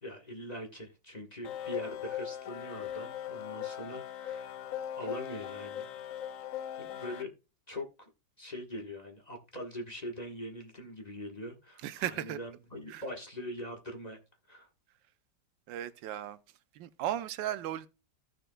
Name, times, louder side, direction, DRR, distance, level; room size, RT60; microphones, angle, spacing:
voice 1, 0.0-4.5 5.0-5.9 6.8-7.3 7.7-8.1 8.4-14.2 14.5-14.7, equal, 25° left, 1.3 m, -42 dB
sound 1, 1.4-7.2, left 10 dB, 80° left, 0.7 m, -39 dB
voice 2, 11.8-12.4 12.9-13.0 15.7-16.4 16.7-17.9, right 12 dB, 90° right, 1.3 m, -36 dB
15.0 x 6.6 x 2.2 m
omnidirectional pair, 2.0 m